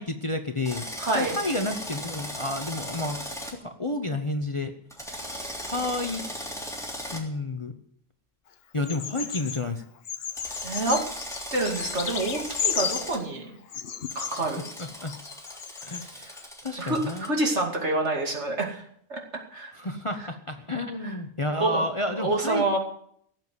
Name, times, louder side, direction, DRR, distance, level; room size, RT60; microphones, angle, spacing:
voice 1, 0.0-0.8 1.1-4.7 5.6-6.2 7.1-7.7 8.7-9.8 14.8-15.2 15.8-16.4 16.6-17.3 19.7-22.8, left 2 dB, 25° left, 7 dB, 0.9 m, -30 dB
Drill, 0.6-3.5 4.9-7.2 10.3-13.2 14.1-17.3, equal, ahead, 3.3 m, -38 dB
voice 2, 1.0-1.4 10.6-11.0 11.5-13.5 14.1-14.6 16.8-18.8 19.1-19.7 21.0-21.1 21.6-21.8 22.1-22.8, right 2 dB, 60° right, 1 dB, 2.9 m, -27 dB
Bird vocalization bird call bird song, 8.8-9.6 10.0-13.2 13.7-16.1 16.4-16.5, left 8 dB, 55° left, 1.0 m, -34 dB
17.5 x 7.7 x 9.6 m, 0.68 s
omnidirectional pair, 1.3 m